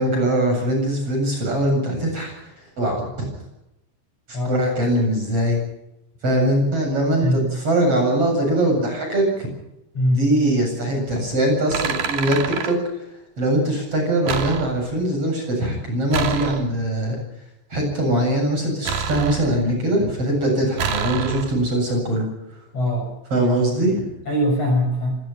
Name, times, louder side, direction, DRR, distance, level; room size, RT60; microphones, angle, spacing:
voice 1, 0.0-2.3 2.8-3.3 4.3-5.6 6.2-9.5 10.1-13.0 13.4-17.2 17.7-22.3 23.3-24.1, right 1 dB, 30° right, 2 dB, 8.6 m, -21 dB
voice 2, 9.9-10.3 22.7-23.1 23.4-23.5 24.3-25.2, equal, 35° left, 2 dB, 7.4 m, -22 dB
sound 1, 11.1-11.2 11.7-12.7 14.3-15.0 16.1-17.0 18.8-19.8 20.8-21.7, right 7 dB, 55° right, 3.5 m, -28 dB
26.0 x 19.5 x 5.7 m, 0.85 s
omnidirectional pair, 5.5 m